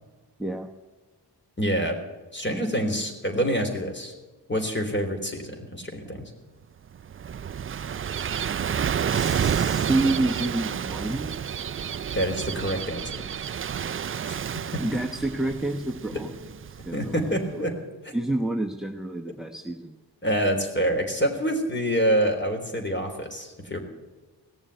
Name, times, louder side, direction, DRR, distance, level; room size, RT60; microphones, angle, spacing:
voice 1, 1.6-2.0 2.3-4.1 4.5-6.3 12.1-13.3 14.2-14.8 16.1-16.2 16.9-17.7 18.0-18.1 20.2-23.8, equal, 25° left, 4 dB, 3.6 m, -27 dB
Gull seagull / Waves surf, 6.9-17.4, right 8 dB, 35° right, 0.4 m, -30 dB
voice 2, 9.1-11.3 14.8-16.3 16.8-17.6 18.1-20.0, right 2 dB, ahead, 1 dB, 1.1 m, -29 dB
17.5 x 7.2 x 9.4 m, 1.3 s
cardioid pair, 60°, 41 cm